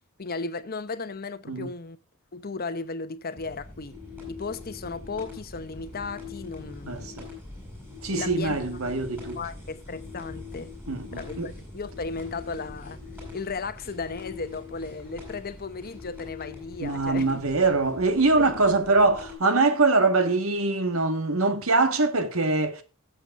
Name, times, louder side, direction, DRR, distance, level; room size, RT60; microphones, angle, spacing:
voice 1, 0.2-2.0 2.3-4.0 4.3-7.2 8.1-8.6 9.4-10.7 11.1-13.0 13.3-17.4 18.4-18.5, left 4 dB, 45° left, 0.9 m, -35 dB
sound 1, 3.4-19.4, left 4 dB, 10° right, 7.6 m, -42 dB
voice 2, 6.9-7.3 8.0-9.4 10.9-11.5 16.8-22.8, right 3 dB, 70° right, 1.7 m, -23 dB
17.5 x 7.9 x 2.6 m
head